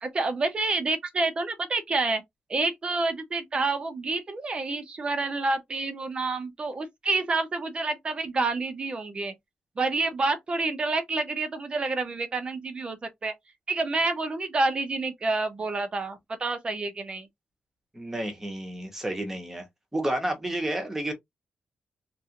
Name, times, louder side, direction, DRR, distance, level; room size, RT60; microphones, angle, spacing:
voice 1, 0.0-2.2 2.5-9.3 9.8-13.3 13.7-17.3, right 3 dB, 30° right, 0.6 m, -28 dB
voice 2, 17.9-19.7 19.9-21.1, right 1 dB, 10° right, 0.9 m, -30 dB
2.9 x 2.5 x 2.8 m
wide cardioid pair, 160°, 3 cm